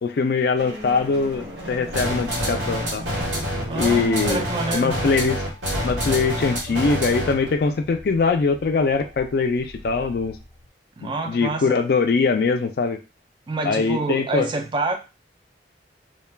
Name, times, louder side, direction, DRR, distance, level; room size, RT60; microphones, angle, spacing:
voice 1, 0.0-3.0 3.8-4.4 4.7-5.4 5.8-10.4 11.0-13.0 13.7-14.5, left 4 dB, 55° left, 0.3 m, -22 dB
sound 1, 0.6-10.7, equal, 65° right, 1.0 m, -37 dB
sound 2, 1.9-7.5, equal, 85° right, 1.1 m, -27 dB
voice 2, 3.7-5.0 11.0-11.8 13.5-15.0, right 3 dB, 25° right, 0.3 m, -27 dB
2.2 x 2.2 x 3.2 m
head